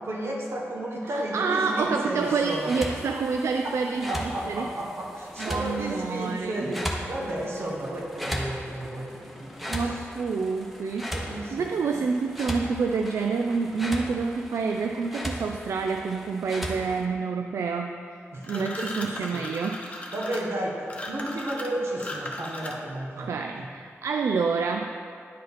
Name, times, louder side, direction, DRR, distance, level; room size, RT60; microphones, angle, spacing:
voice 1, 0.0-2.8 3.6-3.8 4.1-10.1 11.1-12.0 18.3-19.5 20.1-23.7, right 1 dB, 60° right, -1 dB, 1.4 m, -33 dB
voice 2, 1.0-4.7 5.4-6.7 9.7-18.1 18.4-19.9 23.2-25.0, right 4 dB, 80° right, 4 dB, 0.3 m, -28 dB
sound 1, 2.2-17.1, equal, ahead, 0.9 m, -37 dB
sound 2, 18.4-23.0, left 1 dB, 25° left, 1.0 m, -37 dB
9.9 x 5.1 x 4.1 m, 2.3 s
wide cardioid pair, 85°, 5 cm